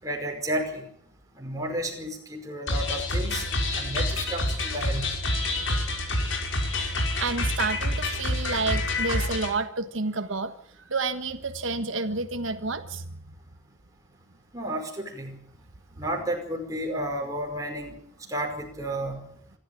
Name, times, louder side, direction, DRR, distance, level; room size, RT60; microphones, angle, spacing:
voice 1, 0.0-0.9 1.3-3.4 3.7-5.2 14.5-15.4 15.9-18.0 18.3-19.3, right 1 dB, 15° right, 2 dB, 5.1 m, -32 dB
sound 1, 2.7-9.5, left 2 dB, 80° left, 5.5 m, -27 dB
voice 2, 7.2-10.5 10.9-13.1, right 3 dB, 80° right, 8 dB, 1.5 m, -29 dB
26.0 x 12.5 x 8.7 m, 0.65 s
head